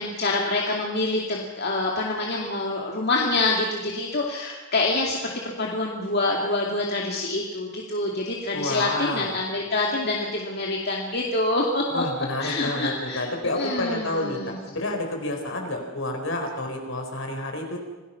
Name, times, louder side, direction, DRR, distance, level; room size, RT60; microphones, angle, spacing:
voice 1, 0.0-5.2 5.4-12.0 12.4-13.3 13.6-14.6, left 2 dB, 50° left, -1 dB, 2.4 m, -26 dB
voice 2, 8.5-9.4 11.9-17.8, left 1 dB, 65° left, 3 dB, 4.5 m, -29 dB
27.0 x 17.5 x 5.8 m, 1.2 s
head